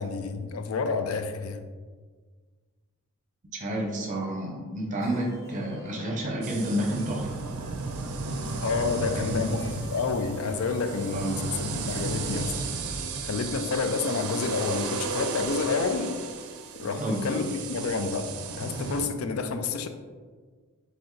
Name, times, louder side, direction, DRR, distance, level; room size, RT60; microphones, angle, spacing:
voice 1, 0.0-1.6 8.6-12.5 13.2-16.2 16.8-18.3 18.6-19.9, left 4 dB, 75° left, 8 dB, 0.4 m, -29 dB
voice 2, 3.5-7.4 9.3-9.8 11.1-11.5 17.0-17.5, right 1 dB, 35° right, 0 dB, 0.8 m, -30 dB
sound 1, 4.9-14.3, equal, 60° left, 1.3 m, -46 dB
sound 2, 6.4-19.1, right 4 dB, 90° right, 0.4 m, -34 dB
4.4 x 3.3 x 3.2 m, 1.5 s
head